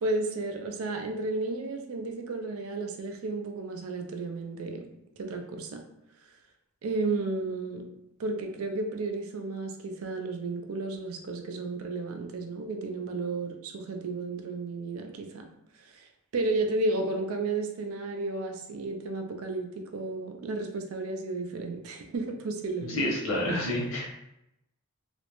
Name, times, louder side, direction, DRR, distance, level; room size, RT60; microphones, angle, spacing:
voice 1, 0.0-4.8 5.2-5.8 6.8-7.9 8.2-15.5 15.8-16.1 16.3-23.1, right 3 dB, 80° right, 4 dB, 0.4 m, -33 dB
voice 2, 22.9-24.1, left 1 dB, 75° left, -2 dB, 0.8 m, -29 dB
2.4 x 2.1 x 2.9 m, 0.82 s
head